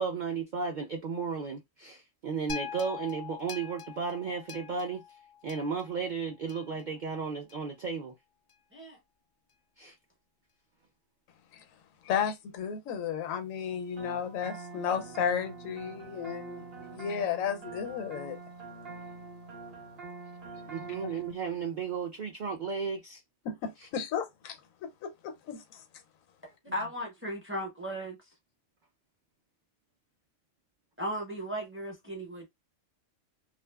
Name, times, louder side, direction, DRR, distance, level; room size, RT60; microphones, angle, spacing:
voice 1, 0.0-5.0 5.4-8.1 9.8-9.9 20.7-23.2 26.7-26.8, right 5 dB, 70° right, 0.4 m, -34 dB
sound 1, 2.5-6.8 7.5-7.6, left 7 dB, 65° left, 0.5 m, -43 dB
voice 2, 12.0-16.6 16.9-18.4 21.0-21.2 23.4-25.8, left 7 dB, 85° left, 1.0 m, -33 dB
sound 2, 14.0-21.3, right 3 dB, 55° right, 0.9 m, -45 dB
voice 3, 26.6-28.2 31.0-32.5, equal, 15° right, 0.5 m, -36 dB
2.5 x 2.4 x 2.2 m
omnidirectional pair, 1.4 m